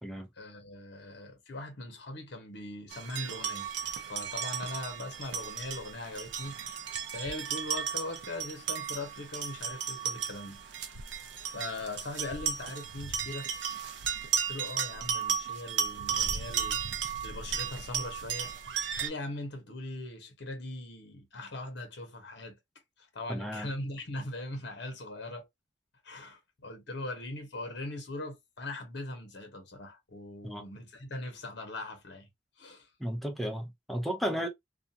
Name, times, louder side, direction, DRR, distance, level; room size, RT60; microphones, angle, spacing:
voice 1, 0.4-3.7 4.0-10.6 11.5-13.5 14.5-16.8 17.2-18.5 19.0-22.6 23.0-25.5 26.0-32.3 32.6-32.9, left 2 dB, 65° left, 0.9 m, -40 dB
sound 1, 2.9-19.1, right 7 dB, 75° right, 0.6 m, -35 dB
voice 2, 23.3-23.7 30.4-30.6 33.0-34.5, equal, ahead, 0.5 m, -34 dB
2.4 x 2.3 x 2.7 m
head